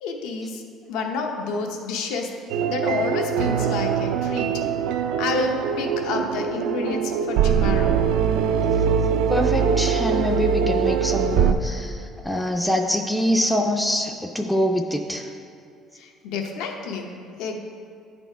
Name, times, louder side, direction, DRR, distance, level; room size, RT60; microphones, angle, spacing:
voice 1, 0.0-0.6 0.9-2.3 2.7-4.7 5.2-8.0 16.0-17.1 17.4-17.6, left 4 dB, 85° left, 3 dB, 0.8 m, -29 dB
sound 1, 2.5-11.5, right 7 dB, 80° right, 0.4 m, -22 dB
voice 2, 9.3-12.0 12.2-15.3, equal, ahead, 2 dB, 0.3 m, -24 dB
10.0 x 4.1 x 4.5 m, 2.4 s
cardioid pair, 155°, 0 cm